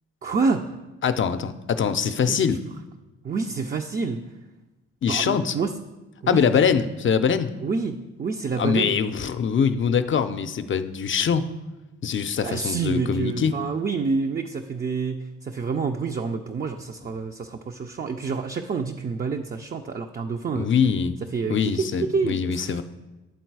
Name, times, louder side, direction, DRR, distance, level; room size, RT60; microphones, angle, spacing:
voice 1, 0.2-0.7 2.3-2.4 3.2-4.2 5.1-5.7 6.2-6.7 7.6-9.0 12.4-20.7 21.3-21.8 22.1-22.8, right 4 dB, 30° right, 4 dB, 0.5 m, -28 dB
voice 2, 1.0-2.6 5.0-5.6 6.3-7.5 8.6-11.4 12.0-13.6 20.5-21.2 21.5-22.8, left 6 dB, 40° left, 10 dB, 0.5 m, -23 dB
10.0 x 3.8 x 4.6 m, 1.1 s
supercardioid pair, 60°, 30 cm